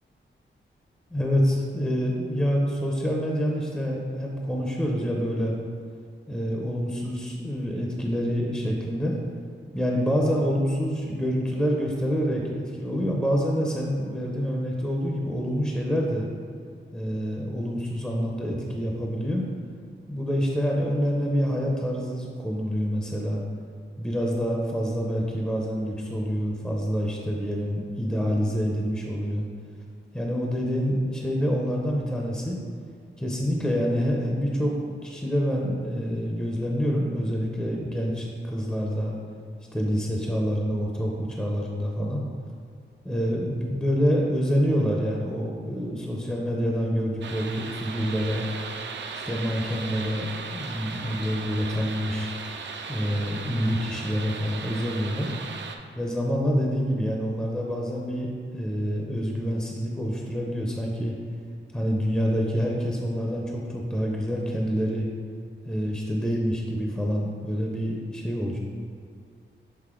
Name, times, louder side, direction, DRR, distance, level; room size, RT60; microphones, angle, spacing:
voice 1, 1.1-5.5 6.3-9.1 9.7-16.3 16.9-19.5 20.1-23.4 24.0-29.5 30.1-32.6 33.2-39.2 39.7-42.2 43.0-48.5 49.1-52.3 52.9-55.3 56.0-58.3 58.5-61.1 61.7-65.1 65.7-68.6, equal, 5° left, -1 dB, 0.5 m, -27 dB
sound 1, 47.2-55.8, right 5 dB, 65° right, 0.5 m, -37 dB
6.8 x 4.0 x 3.7 m, 2.3 s
wide cardioid pair, 145°, 20 cm